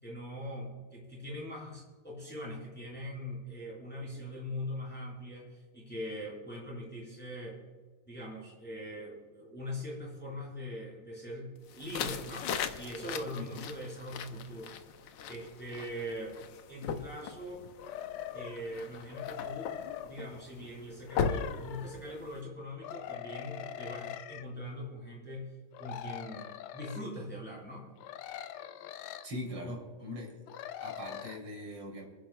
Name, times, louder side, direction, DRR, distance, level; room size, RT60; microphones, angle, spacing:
voice 1, 0.0-7.6 8.1-14.7 15.0-16.4 16.7-17.6 18.3-19.7 20.1-25.5 25.8-27.9, equal, 5° left, -5 dB, 4.5 m, -42 dB
sound 1, 11.7-22.4, left 6 dB, 65° left, 1.3 m, -39 dB
voice 2, 13.3-13.6 29.2-30.4 30.8-32.0, left 1 dB, 75° right, -1 dB, 4.1 m, -41 dB
sound 2, 17.8-18.6 19.1-20.1 21.1-22.0 22.8-24.5 25.7-27.0 28.0-29.3 30.5-31.4, left 11 dB, 90° left, 1.6 m, -42 dB
28.5 x 10.0 x 2.3 m, 1.5 s
omnidirectional pair, 2.4 m